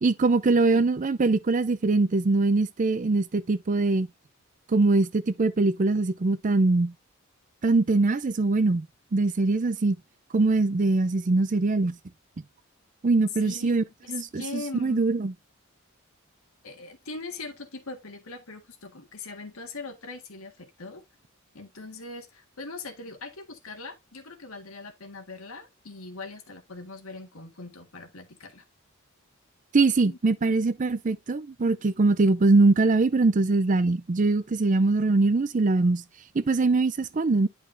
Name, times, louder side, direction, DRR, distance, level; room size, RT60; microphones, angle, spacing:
voice 1, 0.0-4.1 4.7-6.9 7.6-8.9 9.1-10.0 10.3-11.9 13.0-15.3 29.7-36.0 36.3-37.5, right 3 dB, 35° right, 0.5 m, -22 dB
voice 2, 13.4-13.8 14.0-15.1 16.6-21.0 21.5-28.6 30.0-30.2, left 3 dB, 80° left, 1.7 m, -41 dB
10.5 x 5.2 x 2.6 m
head